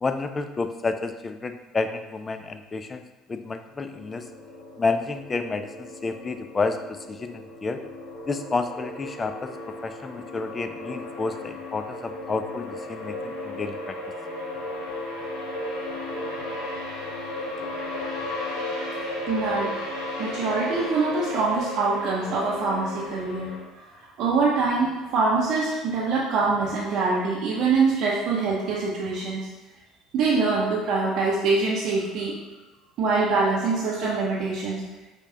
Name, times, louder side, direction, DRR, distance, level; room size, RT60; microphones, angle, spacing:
voice 1, 0.0-3.0 3.3-4.2 4.8-6.8 7.1-7.8 8.3-9.5 9.8-14.0, left 4 dB, 25° left, 8 dB, 0.3 m, -30 dB
sound 1, 3.9-23.6, left 1 dB, 80° left, 0.9 m, -35 dB
voice 2, 19.3-19.7 20.2-23.5 24.0-29.5 30.1-32.4 33.0-34.8, right 4 dB, 60° right, -5 dB, 0.6 m, -24 dB
4.8 x 2.3 x 2.8 m, 1.1 s
hypercardioid pair, 70°, 0 cm